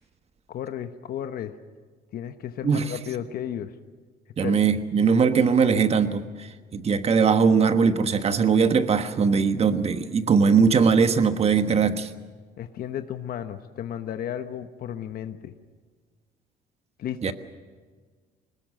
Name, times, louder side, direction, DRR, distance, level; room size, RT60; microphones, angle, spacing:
voice 1, 0.5-1.5 2.1-3.7 4.4-4.6 12.6-15.5 17.0-17.3, left 10 dB, 60° left, 9 dB, 1.0 m, -33 dB
voice 2, 4.4-12.1 17.2-17.3, right 5 dB, 40° right, 9 dB, 1.3 m, -20 dB
22.0 x 19.5 x 7.7 m, 1.5 s
cardioid pair, 110°, 17 cm